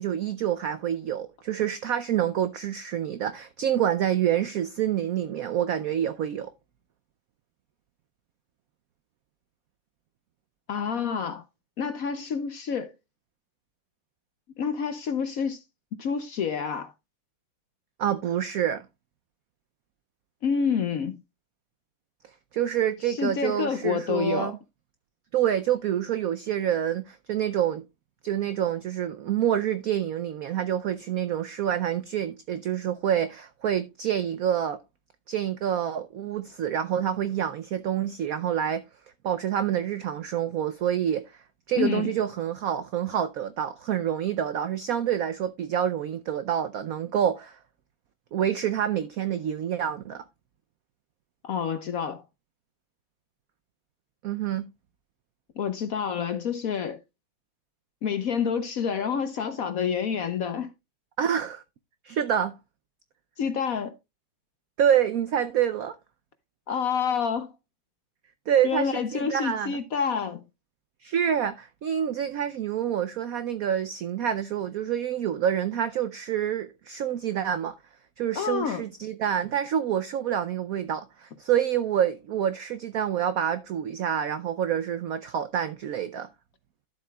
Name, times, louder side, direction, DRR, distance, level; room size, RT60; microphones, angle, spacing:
voice 1, 0.0-6.5 18.0-18.8 22.5-24.6 25.3-27.8 28.2-34.8 35.3-38.8 39.2-41.4 41.7-47.6 48.3-50.2 54.2-54.7 61.2-61.6 62.0-62.5 64.8-66.0 68.5-69.8 71.0-77.8 78.2-86.3, right 9 dB, 85° right, 0.7 m, -27 dB
voice 2, 10.7-11.4 11.8-12.9 14.6-15.6 16.0-16.9 20.4-21.2 23.1-24.5 41.8-42.1 51.4-52.2 55.6-57.0 58.0-60.7 63.4-63.9 66.7-67.5 68.6-70.4 78.4-78.8, left 6 dB, 65° left, 0.9 m, -28 dB
12.5 x 7.4 x 2.3 m
omnidirectional pair, 2.1 m